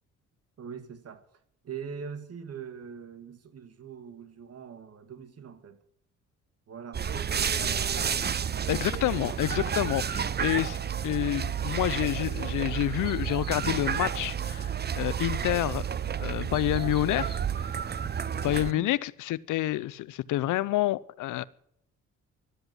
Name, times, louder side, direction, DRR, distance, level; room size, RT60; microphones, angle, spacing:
voice 1, 0.6-1.3 1.6-5.8 6.7-8.1 9.4-9.8 18.5-18.9, right 7 dB, 55° right, 2.1 m, -43 dB
sound 1, 6.9-18.7, right 8 dB, 35° right, 0.8 m, -31 dB
voice 2, 8.7-10.8 11.0-15.9 16.2-17.8 18.3-21.4, left 15 dB, 85° left, 0.7 m, -28 dB
13.5 x 13.0 x 7.7 m
cardioid pair, 90°, 30 cm